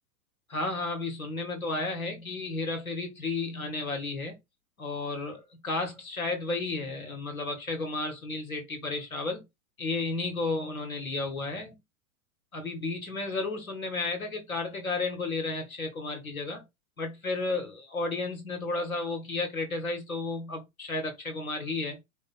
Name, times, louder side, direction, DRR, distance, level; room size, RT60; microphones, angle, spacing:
voice 1, 0.5-4.4 4.8-9.4 9.8-11.8 12.5-16.6 17.0-22.0, left 3 dB, 85° left, 1.5 m, -33 dB
4.7 x 2.2 x 4.1 m
figure-of-eight pair, 100°, 41 cm